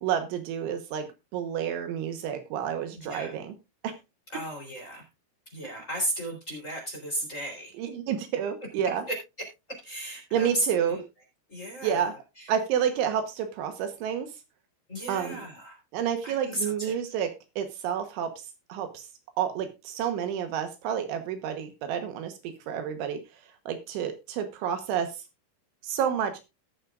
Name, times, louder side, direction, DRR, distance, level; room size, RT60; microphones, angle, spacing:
voice 1, 0.0-1.1 1.3-3.5 3.8-4.0 7.8-9.0 10.3-11.0 11.8-12.1 12.5-14.3 15.1-15.4 15.9-17.3 17.6-18.3 18.7-19.1 19.4-23.2 23.7-25.1 25.8-26.4, right 8 dB, 75° right, 8 dB, 3.4 m, -29 dB
voice 2, 3.0-3.3 4.3-5.1 5.5-7.7 9.1-9.2 9.8-11.0 11.5-12.5 14.9-15.8 16.2-17.0, right 1 dB, 20° left, 0 dB, 3.2 m, -34 dB
19.0 x 7.4 x 2.4 m, 0.25 s
omnidirectional pair, 5.7 m